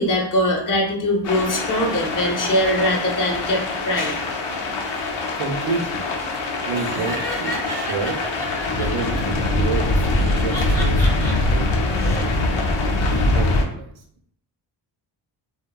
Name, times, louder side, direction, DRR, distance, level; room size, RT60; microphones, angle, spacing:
voice 1, 0.0-4.3, left 1 dB, 45° left, -1 dB, 0.7 m, -22 dB
sound 1, 1.2-13.6, left 2 dB, 80° left, 0.6 m, -23 dB
voice 2, 5.4-6.0 6.4-8.2 8.7-12.5 13.1-14.0, right 4 dB, 90° right, 4 dB, 0.6 m, -30 dB
Laughter, 6.7-9.3 10.2-11.3 11.8-12.2, equal, 5° left, 0.6 m, -32 dB
2.8 x 2.1 x 2.2 m, 0.65 s
cardioid pair, 105°, 46 cm